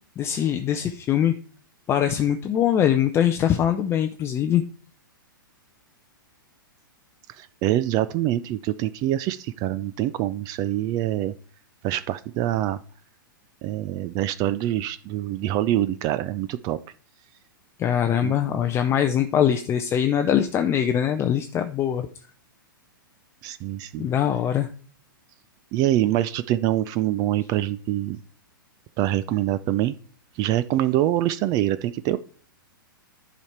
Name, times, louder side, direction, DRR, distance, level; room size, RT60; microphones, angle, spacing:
voice 1, 0.2-1.4 1.9-4.6 17.8-22.1 24.0-24.7, left 9 dB, 20° left, 7 dB, 0.5 m, -22 dB
voice 2, 7.4-11.3 11.8-12.8 13.6-16.8 18.2-18.3 23.4-24.1 25.7-28.2 29.0-29.9 30.4-32.2, right 13 dB, 35° right, 15 dB, 0.4 m, -25 dB
10.5 x 5.1 x 4.3 m, 0.43 s
hypercardioid pair, 115°, 12 cm